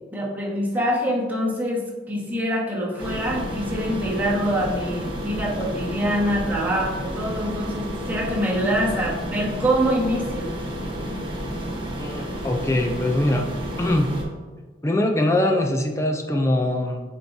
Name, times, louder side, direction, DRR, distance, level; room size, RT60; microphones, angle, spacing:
voice 1, 0.1-10.5, equal, 10° right, -5 dB, 1.4 m, -25 dB
sound 1, 3.0-14.2, equal, 30° right, 1.1 m, -31 dB
voice 2, 11.9-13.5 13.8-14.1 14.8-17.0, left 1 dB, 15° left, 2 dB, 0.4 m, -22 dB
8.0 x 4.6 x 2.7 m, 1.4 s
head